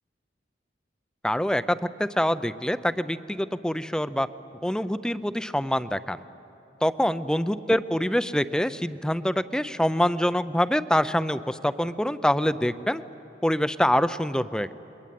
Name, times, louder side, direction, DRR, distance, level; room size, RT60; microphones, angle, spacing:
voice 1, 1.2-4.3 4.6-6.2 6.8-13.0 13.4-14.7, equal, 5° left, 13 dB, 0.5 m, -25 dB
28.0 x 22.0 x 9.3 m, 3.0 s
head